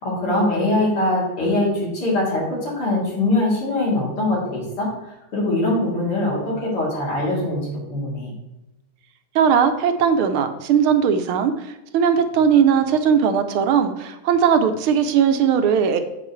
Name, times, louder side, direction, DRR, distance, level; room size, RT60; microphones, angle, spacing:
voice 1, 0.0-4.9 5.3-7.6 7.9-8.3, left 2 dB, 80° left, -5 dB, 4.2 m, -22 dB
voice 2, 9.3-11.5 11.9-16.0, right 7 dB, 80° right, 8 dB, 1.6 m, -18 dB
9.2 x 7.4 x 3.2 m, 0.98 s
omnidirectional pair, 2.4 m